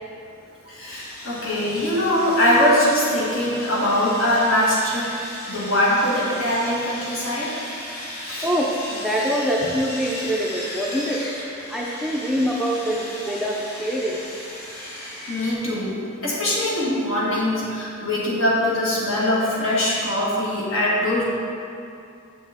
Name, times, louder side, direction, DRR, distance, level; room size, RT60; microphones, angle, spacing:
voice 1, 0.6-5.1 5.5-7.6 8.2-8.5 15.3-15.9 16.2-21.2, left 1 dB, 65° left, -6 dB, 1.6 m, -22 dB
Sawing, 0.9-15.5, left 1 dB, 90° left, 1.5 m, -36 dB
voice 2, 8.4-11.2 11.7-14.2, equal, ahead, -4 dB, 0.4 m, -24 dB
7.0 x 6.2 x 3.5 m, 2.5 s
head